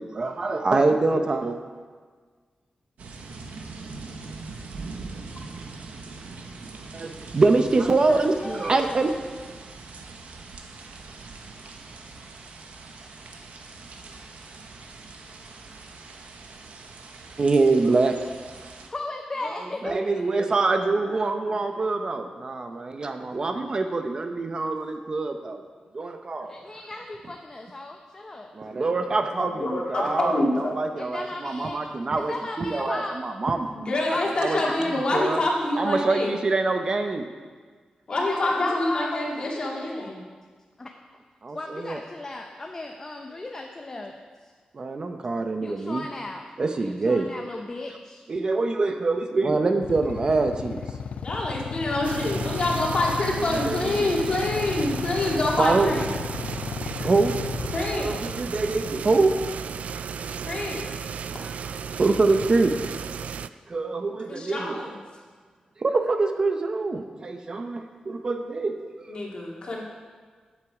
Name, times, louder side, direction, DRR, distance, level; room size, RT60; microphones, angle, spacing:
voice 1, 0.0-1.6 6.9-9.1 17.4-18.1 19.8-25.6 25.9-26.6 28.5-33.7 34.4-34.6 34.9-35.4 35.8-37.3 41.4-42.0 44.7-46.0 46.6-47.3 48.3-50.8 53.6-54.1 55.6-55.9 56.6-57.3 58.0-59.3 59.9-60.0 61.4-61.6 62.0-62.7 63.7-64.8 65.8-69.2, right 3 dB, 35° right, 6 dB, 0.7 m, -25 dB
sound 1, 3.0-18.9, right 3 dB, 90° right, 1.2 m, -42 dB
voice 2, 8.4-8.7 14.1-14.3 18.7-20.0 26.5-28.5 31.0-31.8 32.1-33.2 34.1-35.0 38.1-39.1 39.4-40.1 40.8-40.9 41.5-44.1 45.2-46.5 46.8-48.2, left 2 dB, 20° left, 2 dB, 0.7 m, -36 dB
voice 3, 29.4-30.7 33.8-36.3 38.1-40.2 43.9-44.0 51.2-56.1 57.7-58.1 60.5-60.9 64.2-65.0 69.1-69.8, left 2 dB, 45° left, -3 dB, 2.3 m, -26 dB
Motorcycle / Idling, 49.8-59.7, left 6 dB, 70° left, 0.6 m, -34 dB
sound 2, 52.0-63.5, right 7 dB, 70° right, 0.3 m, -34 dB
14.0 x 8.9 x 4.9 m, 1.5 s
wide cardioid pair, 175°, 2 cm